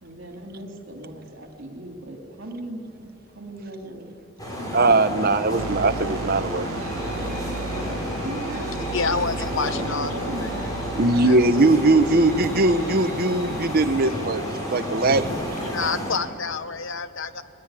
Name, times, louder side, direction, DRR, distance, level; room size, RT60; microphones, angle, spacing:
voice 1, 0.0-4.2 4.6-5.3 8.1-10.8 12.0-12.4, right 1 dB, 60° right, 2 dB, 2.9 m, -38 dB
sound 1, 4.4-16.1, equal, 20° left, 5.0 m, -31 dB
voice 2, 4.7-6.7 11.0-14.4 14.7-15.3, right 2 dB, 45° right, 9 dB, 0.9 m, -20 dB
sound 2, 5.6-14.1, right 4 dB, 85° right, 0.5 m, -36 dB
sound 3, 6.7-15.7, left 1 dB, 35° left, 7.1 m, -44 dB
voice 3, 8.9-10.5 11.2-11.4 13.4-13.6 15.6-17.4, left 4 dB, 60° left, 12 dB, 0.9 m, -28 dB
21.5 x 20.5 x 9.1 m, 2.6 s
head